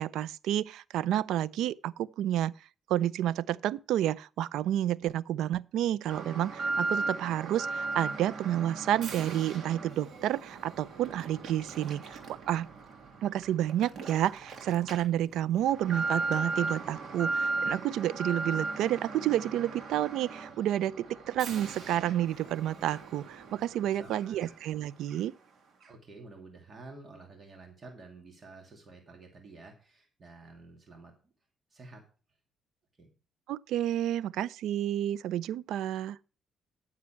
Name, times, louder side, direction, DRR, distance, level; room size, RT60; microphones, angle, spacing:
voice 1, 0.0-2.5 2.9-12.2 12.5-12.7 13.2-25.3 33.5-36.2, right 12 dB, 85° right, 0.4 m, -30 dB
Alarm, 6.1-24.8 25.1-25.2 25.8-25.9, right 3 dB, 55° right, 3.0 m, -37 dB
voice 2, 23.8-24.5 25.9-31.3 31.7-32.0 33.0-33.1, right 3 dB, 40° right, 2.6 m, -51 dB
11.0 x 7.3 x 4.5 m
cardioid pair, 90°, 0 cm